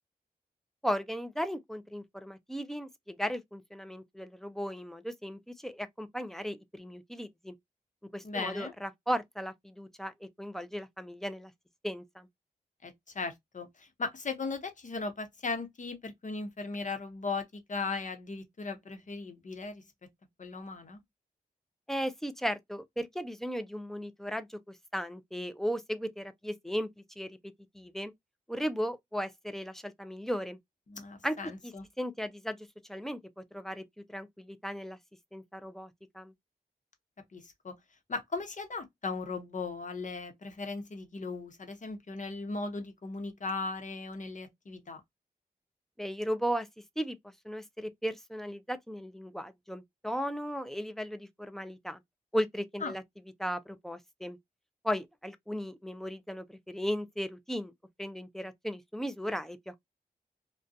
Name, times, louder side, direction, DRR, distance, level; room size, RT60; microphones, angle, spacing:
voice 1, 0.8-7.5 8.1-11.5 11.8-12.3 21.9-24.6 24.9-26.9 27.2-27.4 27.7-28.1 28.5-30.6 31.2-31.4 31.6-31.7 32.0-32.6 32.9-33.8 34.1-35.0 35.3-36.3 46.0-46.7 47.0-47.2 47.4-52.0 52.3-53.0 53.4-54.4 54.8-57.7 58.0-59.8, equal, ahead, 0.5 m, -36 dB
voice 2, 8.2-8.7 12.8-19.8 20.4-21.0 30.9-31.9 37.3-37.8 38.1-45.0 52.8-53.0, left 4 dB, 50° left, 0.9 m, -37 dB
2.5 x 2.3 x 2.4 m
cardioid pair, 45°, 16 cm